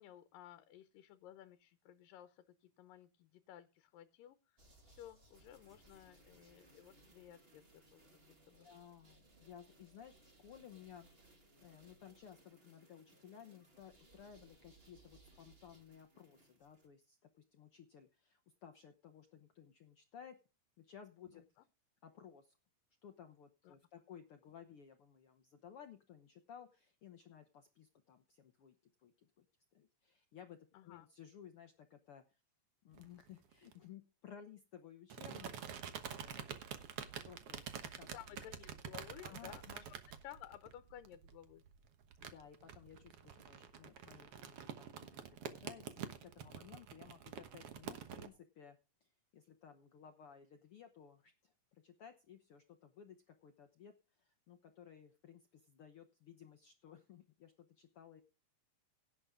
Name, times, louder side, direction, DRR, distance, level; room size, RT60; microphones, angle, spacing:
voice 1, 0.0-4.6 4.9-7.6 7.9-8.7 21.3-21.4 23.6-23.8 30.7-31.1 38.1-39.6 40.2-41.6, left 12 dB, 85° left, 10 dB, 2.5 m, -56 dB
sound 1, 4.6-16.9, right 2 dB, 25° right, 1.6 m, -66 dB
voice 2, 8.6-20.4 20.8-21.4 22.0-22.6 23.0-29.5 29.7-32.4 32.8-35.7 36.0-36.7 37.0-37.7 38.0-38.4 39.2-39.8 42.2-58.2, left 8 dB, 70° left, 7 dB, 1.3 m, -58 dB
sound 2, 32.9-33.7 35.1-48.3, right 8 dB, 60° right, 1.7 m, -48 dB
17.0 x 8.6 x 3.7 m, 0.31 s
omnidirectional pair, 3.8 m